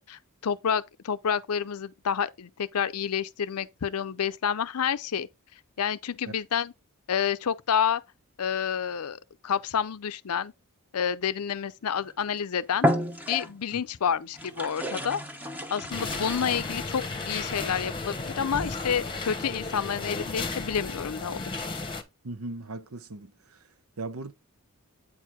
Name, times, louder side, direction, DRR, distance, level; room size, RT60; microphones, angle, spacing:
voice 1, 0.0-5.3 5.8-6.7 7.1-8.0 8.4-9.2 9.4-10.5 10.9-12.9 13.3-15.2 15.7-21.4, left 7 dB, 80° left, 0.5 m, -29 dB
sound 1, 12.1-12.3 12.7-13.8 14.3-17.1, left 1 dB, 5° right, 1.0 m, -31 dB
sound 2, 15.9-22.0, left 3 dB, 20° left, 1.0 m, -34 dB
voice 2, 22.2-23.6 24.0-24.3, right 2 dB, 70° right, 0.8 m, -38 dB
8.7 x 4.7 x 3.6 m
head